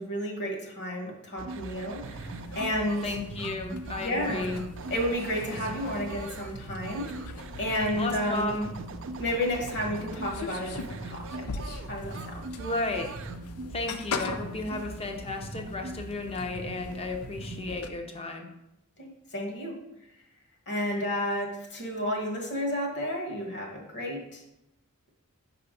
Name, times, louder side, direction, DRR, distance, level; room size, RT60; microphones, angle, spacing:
voice 1, 0.0-3.1 4.0-4.5 4.9-7.0 7.6-8.6 9.2-11.5 11.9-12.4 19.0-19.7 20.7-24.4, left 1 dB, 55° left, 1 dB, 1.4 m, -31 dB
sound 1, 1.4-17.8, right 3 dB, 60° right, 0.5 m, -41 dB
sound 2, 2.0-17.9, left 4 dB, 85° left, 0.5 m, -42 dB
voice 2, 3.0-4.7 8.0-8.7 12.6-13.1 13.7-18.5, left 2 dB, 30° left, 4 dB, 0.7 m, -33 dB
5.6 x 3.5 x 5.1 m, 0.87 s
head